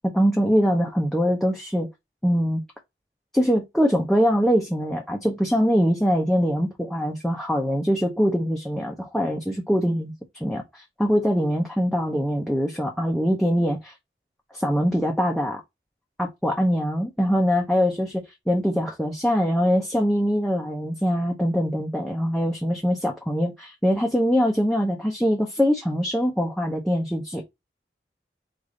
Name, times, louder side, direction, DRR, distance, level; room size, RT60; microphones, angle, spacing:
voice 1, 0.1-1.9 2.2-2.6 3.3-10.1 10.4-13.9 14.5-15.6 16.2-27.4, equal, ahead, 0.6 m, -23 dB
5.0 x 2.5 x 3.8 m
head